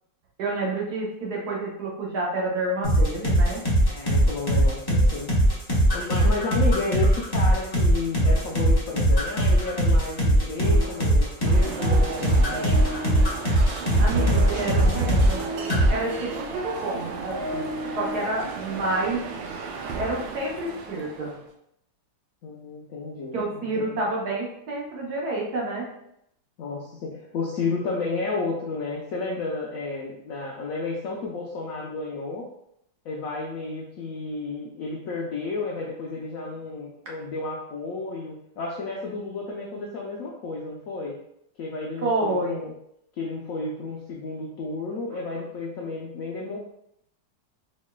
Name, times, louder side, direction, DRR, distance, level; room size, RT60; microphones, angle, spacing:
voice 1, 0.4-3.6 14.0-15.4 15.9-19.3 19.9-21.4 23.3-25.9 42.0-42.6, right 2 dB, 65° right, -3 dB, 1.3 m, -29 dB
sound 1, 2.8-15.4 15.7-15.9, right 1 dB, 35° left, 0.3 m, -20 dB
voice 2, 3.9-5.3 5.9-12.7 22.4-24.0 26.6-32.5 33.0-41.2 41.6-42.7 43.2-46.6, left 3 dB, 75° left, -2 dB, 0.7 m, -32 dB
sound 2, 10.6-11.4 11.6-13.3 14.1-18.2, right 1 dB, 45° right, 0.6 m, -31 dB
sound 3, 11.4-21.5, right 5 dB, 90° right, 1.3 m, -35 dB
4.3 x 3.1 x 2.2 m, 0.76 s
omnidirectional pair, 2.0 m